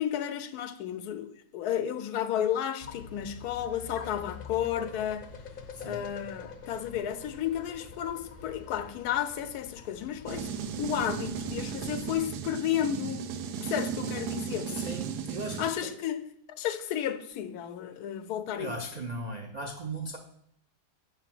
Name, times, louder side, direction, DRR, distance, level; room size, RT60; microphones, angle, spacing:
voice 1, 0.0-5.3 5.8-10.5 10.8-13.3 13.6-14.9 15.6-16.2 16.5-18.7, left 10 dB, 80° left, 1.1 m, -32 dB
sound 1, 2.8-12.2, left 6 dB, 50° left, 0.7 m, -46 dB
voice 2, 5.7-6.0 14.7-15.9 18.5-20.2, right 2 dB, 60° right, 0.4 m, -38 dB
sound 2, 10.3-15.7, right 7 dB, 90° right, 1.2 m, -35 dB
7.5 x 3.4 x 5.9 m
omnidirectional pair, 1.6 m